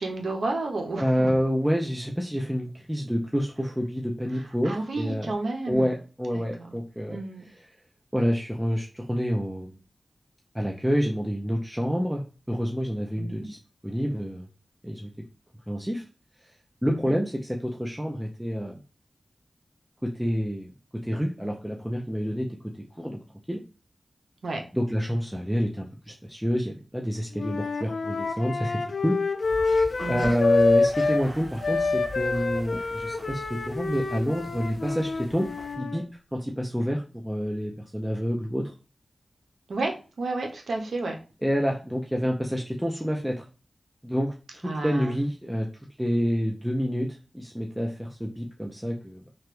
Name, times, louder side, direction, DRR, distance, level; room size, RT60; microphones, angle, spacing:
voice 1, 0.0-1.3 4.6-5.9 6.3-6.7 7.1-7.4 13.2-13.5 16.9-17.2 24.4-24.6 30.0-30.3 39.7-41.2 44.6-45.2, right 2 dB, 90° right, 2 dB, 0.6 m, -31 dB
voice 2, 1.0-5.3 5.7-7.2 8.1-9.7 10.5-13.6 13.8-14.4 14.8-15.1 15.7-16.0 16.8-18.8 20.0-20.7 21.0-22.5 23.0-23.2 23.5-23.6 24.7-29.2 30.1-35.5 35.8-36.0 36.3-38.7 41.4-43.4 44.0-45.7 46.0-47.1 47.3-49.3, equal, 5° right, 0 dB, 0.4 m, -28 dB
Wind instrument woodwind instrument, 27.3-31.2 31.6-36.0, left 3 dB, 70° left, 0.4 m, -26 dB
sound 1, 29.4-35.8, equal, 35° right, 1.6 m, -43 dB
2.9 x 2.2 x 3.1 m, 0.33 s
wide cardioid pair, 70°, 0 cm